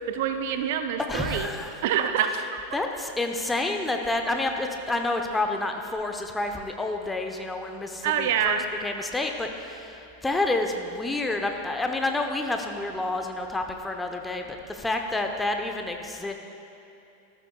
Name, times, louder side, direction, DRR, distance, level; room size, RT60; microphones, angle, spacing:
voice 1, 0.1-1.5 1.8-2.6 8.0-8.6, right 8 dB, 50° right, 8 dB, 0.6 m, -26 dB
voice 2, 1.0-1.7 2.7-16.3, left 2 dB, 10° left, 4 dB, 0.9 m, -29 dB
19.5 x 13.5 x 2.4 m, 2.7 s
figure-of-eight pair, 90°, 0 cm